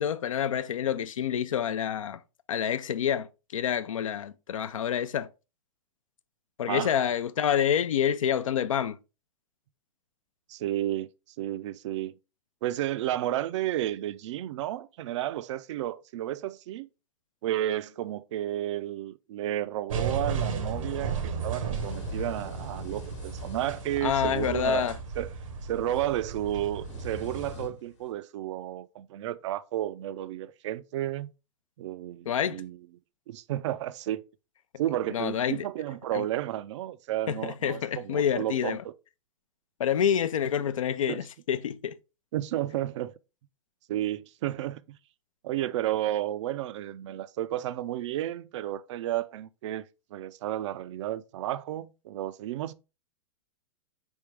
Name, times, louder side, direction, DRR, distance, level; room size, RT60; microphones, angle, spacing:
voice 1, 0.0-2.2 2.5-5.3 6.6-9.0 24.0-25.0 32.3-32.6 35.1-35.7 36.1-36.2 37.3-38.8 39.8-42.0, left 9 dB, 85° left, 0.5 m, -28 dB
voice 2, 10.5-11.1 11.4-12.1 12.6-16.9 17.4-24.8 25.2-25.3 25.7-31.3 31.8-32.8 33.3-34.2 34.8-38.9 41.1-41.2 42.3-43.1 43.9-45.0 45.4-49.8 50.1-52.7, right 13 dB, 65° right, 0.4 m, -32 dB
sound 1, 19.9-27.5, right 5 dB, 80° right, 1.0 m, -34 dB
sound 2, 20.6-28.1, left 5 dB, 65° left, 1.1 m, -48 dB
4.3 x 3.5 x 3.3 m
hypercardioid pair, 120°, 16 cm